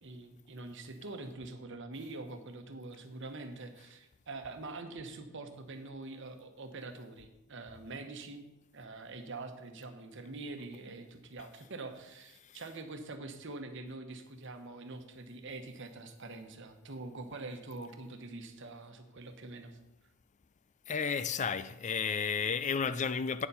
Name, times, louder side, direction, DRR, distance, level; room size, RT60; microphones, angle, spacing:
voice 1, 0.0-8.5 8.7-19.8, right 3 dB, 60° right, 1.1 m, -45 dB
voice 2, 20.9-23.5, left 6 dB, 35° left, 0.4 m, -32 dB
9.1 x 7.0 x 5.6 m
head